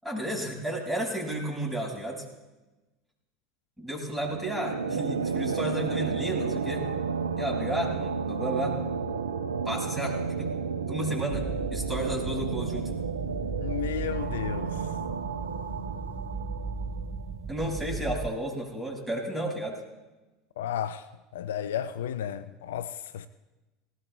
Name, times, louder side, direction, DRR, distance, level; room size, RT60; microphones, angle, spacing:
voice 1, 0.0-2.2 3.8-6.9 7.4-8.8 9.6-11.4 11.7-12.9 17.5-19.8, right 1 dB, ahead, 6.2 m, -32 dB
sound 1, 4.3-17.4, right 5 dB, 85° right, 0.8 m, -32 dB
sound 2, 11.3-18.3, right 4 dB, 30° right, 1.0 m, -37 dB
voice 2, 13.6-15.0 20.6-21.1 21.3-23.3, left 9 dB, 75° left, 0.5 m, -33 dB
19.0 x 17.5 x 3.3 m
hypercardioid pair, 75°, 0 cm